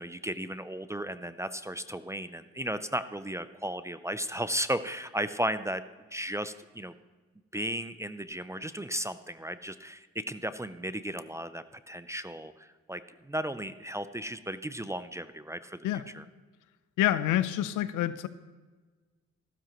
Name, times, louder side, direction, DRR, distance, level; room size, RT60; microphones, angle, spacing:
voice 1, 0.0-5.8 6.1-6.9 7.5-15.8 16.1-16.2, right 1 dB, 10° right, 13 dB, 0.5 m, -35 dB
voice 2, 17.0-18.3, left 12 dB, 85° left, 14 dB, 0.7 m, -27 dB
15.0 x 12.5 x 3.0 m, 1.4 s
cardioid pair, 90°, 30 cm